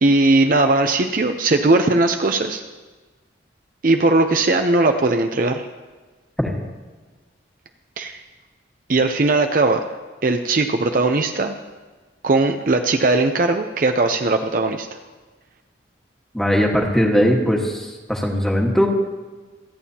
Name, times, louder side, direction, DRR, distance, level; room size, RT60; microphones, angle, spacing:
voice 1, 0.0-2.6 3.8-5.6 8.0-8.2 8.9-9.9 10.2-11.6 12.2-14.9, right 2 dB, 45° right, 6 dB, 0.6 m, -18 dB
voice 2, 16.3-18.9, equal, 5° left, -1 dB, 1.5 m, -19 dB
27.0 x 9.1 x 2.9 m, 1.3 s
head